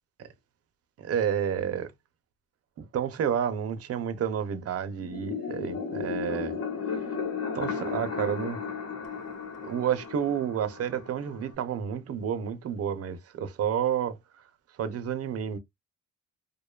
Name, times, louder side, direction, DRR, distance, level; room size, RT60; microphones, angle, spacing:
voice 1, 1.0-1.9 2.8-6.6 6.9-7.1 7.5-8.6 9.6-14.2 14.8-15.6, right 8 dB, 50° right, 0.6 m, -30 dB
sound 1, 5.0-11.5, left 6 dB, 55° left, 1.0 m, -35 dB
2.6 x 2.2 x 2.2 m
cardioid pair, 90°, 30 cm